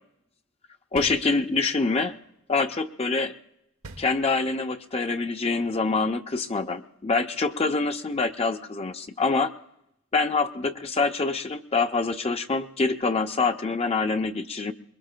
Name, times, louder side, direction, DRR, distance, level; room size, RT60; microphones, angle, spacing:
voice 1, 0.9-2.1 2.5-3.3 4.0-9.5 10.1-14.7, left 3 dB, 30° left, 6 dB, 0.5 m, -25 dB
sound 1, 1.0-1.9 3.8-4.8, right 2 dB, 90° right, 1.1 m, -44 dB
24.0 x 21.5 x 2.2 m, 0.82 s
head